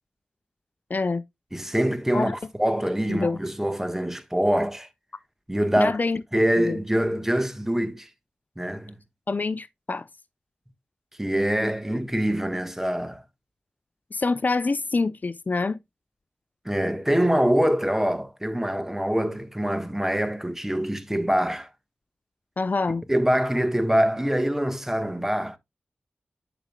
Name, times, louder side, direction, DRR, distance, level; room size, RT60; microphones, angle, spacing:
voice 1, 0.9-1.2 2.1-2.3 3.1-3.4 5.7-6.2 6.6-6.8 9.3-10.1 14.1-15.8 22.6-23.0, left 3 dB, 50° left, 0.5 m, -26 dB
voice 2, 1.5-2.3 2.6-4.9 5.5-6.0 6.3-8.1 8.6-8.9 11.2-13.2 16.6-21.7 23.1-25.6, equal, 10° right, 1.2 m, -24 dB
10.0 x 5.1 x 2.2 m
cardioid pair, 40°, 4 cm